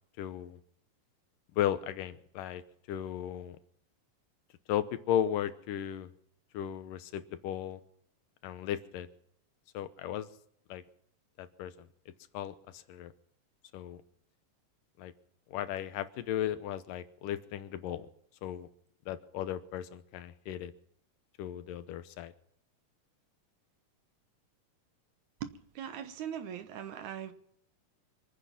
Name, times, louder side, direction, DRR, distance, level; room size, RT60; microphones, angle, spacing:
voice 1, 0.2-0.6 1.5-2.6 2.9-3.6 4.7-6.1 6.5-7.8 8.4-9.1 9.7-10.3 10.7-10.8 11.4-11.9 12.3-13.1 13.7-14.0 15.0-15.1 15.5-18.1 18.4-18.7 19.1-20.7 21.4-22.3, left 11 dB, 80° left, 2.5 m, -35 dB
voice 2, 25.4-27.3, right 9 dB, 70° right, 2.1 m, -40 dB
25.5 x 9.8 x 5.8 m
omnidirectional pair, 4.0 m